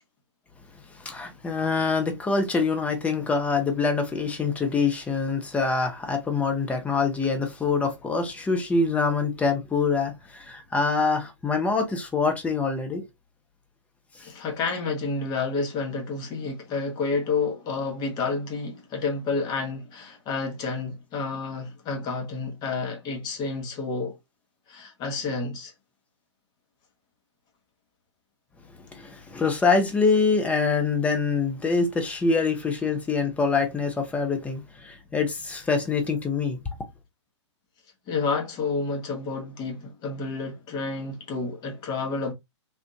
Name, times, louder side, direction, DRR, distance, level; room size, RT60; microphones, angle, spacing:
voice 1, 1.0-13.0 14.2-14.3 28.9-36.6, left 4 dB, 10° left, 0.7 m, -25 dB
voice 2, 14.2-24.2 24.7-25.7 38.1-42.3, left 4 dB, 25° left, 1.1 m, -30 dB
3.5 x 2.5 x 2.7 m
hypercardioid pair, 120°, 15 cm